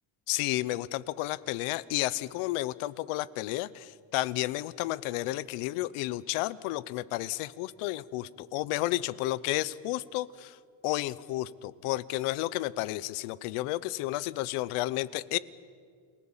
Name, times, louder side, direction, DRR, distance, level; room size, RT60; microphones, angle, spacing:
voice 1, 0.3-10.6 10.8-15.4, left 17 dB, 85° left, 19 dB, 0.9 m, -32 dB
29.0 x 18.5 x 7.3 m, 2.1 s
cardioid pair, 120°, 50 cm